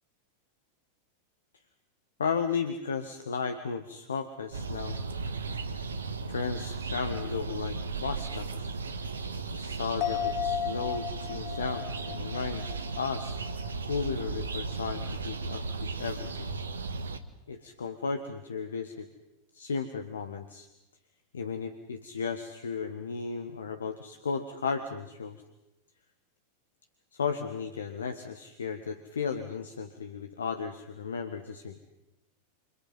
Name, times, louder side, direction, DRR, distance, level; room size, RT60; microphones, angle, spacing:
voice 1, 2.2-5.0 6.3-8.8 9.5-12.6 12.9-13.4 13.9-16.5 17.5-19.1 19.5-20.7 21.3-25.4 27.1-31.8, left 5 dB, 70° left, 8 dB, 1.7 m, -34 dB
sound 1, 4.5-17.2, right 4 dB, 70° right, 1.6 m, -36 dB
sound 2, 10.0-13.7 14.0-14.1, left 10 dB, 40° left, 1.2 m, -35 dB
29.5 x 26.0 x 5.6 m, 0.93 s
figure-of-eight pair, 90°, 0 cm